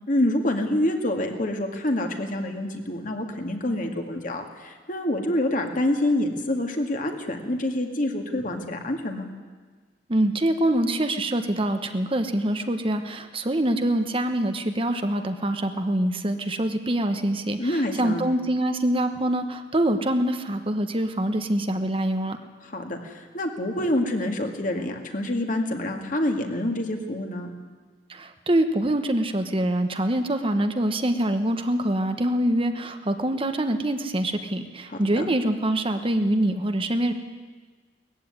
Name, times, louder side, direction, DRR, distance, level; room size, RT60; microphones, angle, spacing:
voice 1, 0.1-9.3 17.6-18.2 22.6-27.5 34.9-35.3, left 1 dB, 50° left, 4 dB, 2.2 m, -27 dB
voice 2, 10.1-22.4 28.1-37.1, right 1 dB, 30° right, 7 dB, 1.1 m, -25 dB
19.0 x 15.0 x 9.7 m, 1.5 s
head